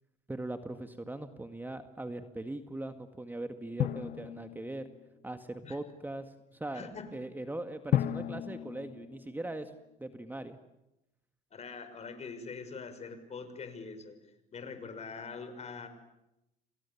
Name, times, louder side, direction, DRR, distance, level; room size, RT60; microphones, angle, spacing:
voice 1, 0.3-4.9 5.2-9.7 10.0-10.6, right 2 dB, 10° right, 8 dB, 2.0 m, -40 dB
Drum, 3.8-5.3 7.9-10.1, left 11 dB, 60° left, 1.5 m, -34 dB
voice 2, 6.7-7.1 11.5-14.2 14.5-15.9, left 5 dB, 40° left, 9 dB, 6.0 m, -43 dB
29.5 x 26.0 x 7.3 m, 0.89 s
supercardioid pair, 90°, 17 cm